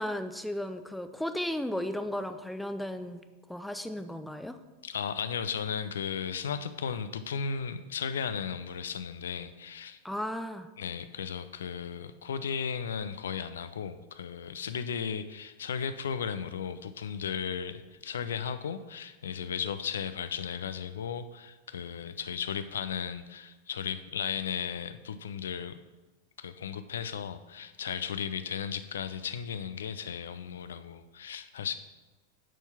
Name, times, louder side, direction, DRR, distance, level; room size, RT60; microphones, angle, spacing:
voice 1, 0.0-3.2 3.5-4.6 10.0-10.7, left 1 dB, ahead, 9 dB, 0.5 m, -35 dB
voice 2, 4.8-10.0 10.8-25.8 26.4-31.8, left 7 dB, 65° left, 12 dB, 0.5 m, -35 dB
9.1 x 4.4 x 5.8 m, 1.2 s
figure-of-eight pair, 90°, 0 cm